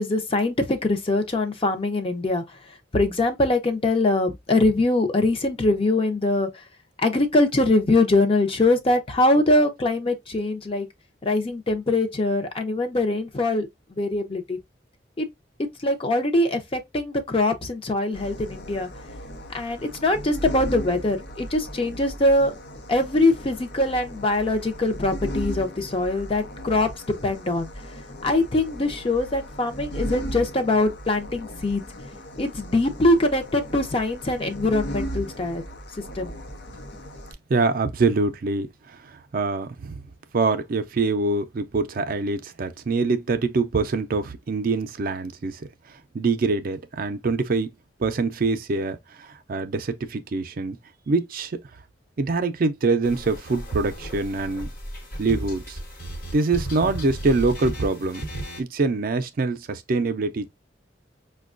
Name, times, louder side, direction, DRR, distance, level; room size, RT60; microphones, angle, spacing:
voice 1, 0.0-2.4 2.9-6.5 7.0-10.9 11.2-14.6 15.2-15.3 15.8-18.9 19.5-22.5 22.9-26.9 27.2-27.7 28.2-31.8 32.4-35.6 36.2-36.3, left 2 dB, 30° left, 0.6 m, -22 dB
sound 1, 18.1-37.3, equal, 80° left, 0.7 m, -37 dB
voice 2, 37.5-40.0 40.3-47.7 48.0-50.8 51.1-51.6 52.2-54.7 55.2-55.8 56.3-58.3 58.6-60.5, right 3 dB, 55° right, 0.4 m, -24 dB
sound 2, 53.0-58.6, right 1 dB, 55° left, 1.1 m, -35 dB
5.1 x 2.2 x 2.4 m
head